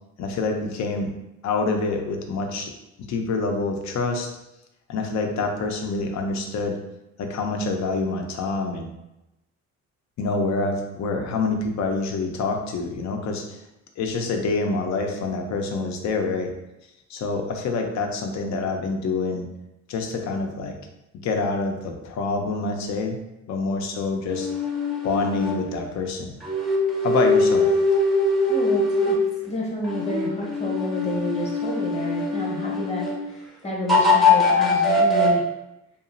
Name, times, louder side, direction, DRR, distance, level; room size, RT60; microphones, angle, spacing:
voice 1, 0.2-1.1 1.4-2.7 3.1-4.3 4.9-6.8 7.2-8.9 10.2-13.6 14.0-16.5 17.1-19.5 19.9-20.7 21.2-23.2 23.5-24.5 25.0-26.3 27.0-27.7, left 3 dB, 65° left, 3 dB, 0.5 m, -26 dB
sound 1, 24.3-25.6 26.4-29.3 29.8-33.2 33.9-35.3, left 2 dB, ahead, 0.6 m, -22 dB
voice 2, 28.5-29.2 29.4-33.1 33.4-35.4, left 1 dB, 20° left, -3 dB, 0.9 m, -29 dB
2.9 x 2.3 x 2.5 m, 0.92 s
cardioid pair, 90°, 30 cm